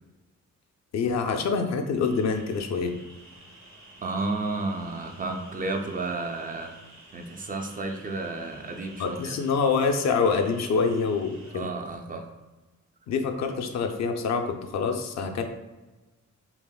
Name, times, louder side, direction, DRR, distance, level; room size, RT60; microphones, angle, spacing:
voice 1, 0.9-2.9 9.0-11.7 13.1-15.4, left 5 dB, 65° left, 5 dB, 0.4 m, -26 dB
sound 1, 2.0-11.6, right 1 dB, 65° right, 0.9 m, -51 dB
voice 2, 4.0-6.7 7.1-9.4 11.5-12.3, right 3 dB, 30° right, 3 dB, 0.4 m, -32 dB
5.6 x 2.1 x 2.3 m, 1.2 s
wide cardioid pair, 130°, 30 cm